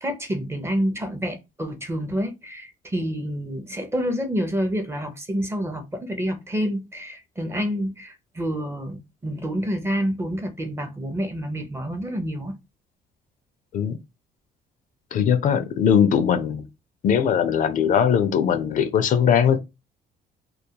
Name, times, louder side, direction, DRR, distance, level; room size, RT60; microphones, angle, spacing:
voice 1, 0.0-12.5, equal, 15° right, 0.5 m, -28 dB
voice 2, 15.1-16.7 17.0-19.6, left 8 dB, 50° left, 0.4 m, -20 dB
2.3 x 2.2 x 2.7 m
cardioid pair, 110°, 17 cm